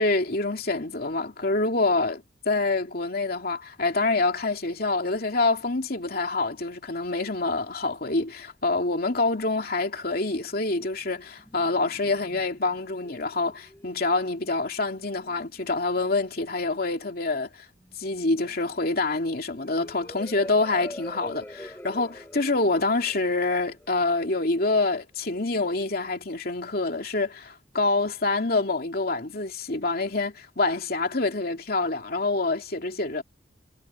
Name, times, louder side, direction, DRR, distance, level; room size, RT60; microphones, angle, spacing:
voice 1, 0.0-17.7 18.0-33.2, left 3 dB, 55° left, 2.7 m, -26 dB
sound 1, 11.0-25.0, left 1 dB, 10° left, 7.5 m, -47 dB
head